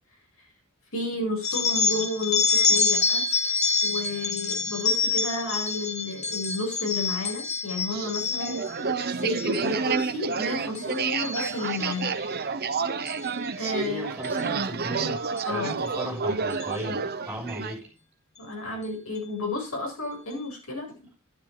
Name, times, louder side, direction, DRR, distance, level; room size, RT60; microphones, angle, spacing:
voice 1, 0.9-3.2 3.8-8.6 9.2-12.1 13.6-14.1 15.5-15.7 18.4-20.9, left 2 dB, 75° left, 0 dB, 7.7 m, -32 dB
sound 1, 1.4-8.7 9.2-9.6 9.9-10.4 10.7-12.1 13.1-13.3 14.2-14.4 15.4-15.5 15.9-16.0 16.5-16.7, left 4 dB, 35° left, 2.3 m, -26 dB
sound 2, 7.9-17.8, right 5 dB, 50° right, 0.9 m, -30 dB
voice 2, 13.8-17.9, right 1 dB, 10° right, -2 dB, 6.7 m, -36 dB
12.0 x 11.5 x 3.9 m, 0.31 s
head